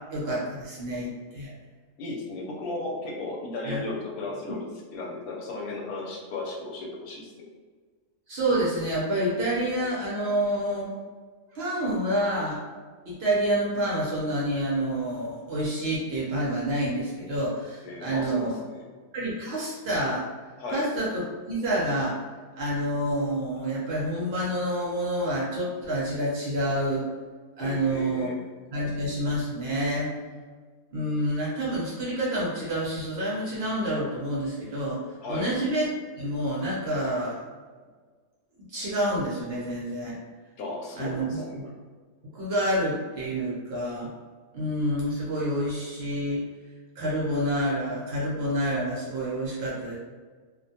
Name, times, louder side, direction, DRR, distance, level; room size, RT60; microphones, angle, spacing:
voice 1, 0.1-1.5 3.6-3.8 8.3-10.9 11.5-12.6 13.1-18.5 19.1-20.2 20.7-22.2 22.6-27.0 27.6-28.3 28.7-30.1 30.9-35.9 36.2-37.4 38.7-40.2 41.0-41.7 42.3-44.1 44.5-46.4 47.0-50.0, right 1 dB, 60° right, -6 dB, 0.7 m, -28 dB
voice 2, 2.0-7.3 17.8-18.9 20.6-20.8 27.6-28.4 35.2-35.5 40.6-41.6, left 2 dB, 90° left, 0 dB, 1.0 m, -35 dB
2.4 x 2.1 x 2.6 m, 1.5 s
omnidirectional pair, 1.5 m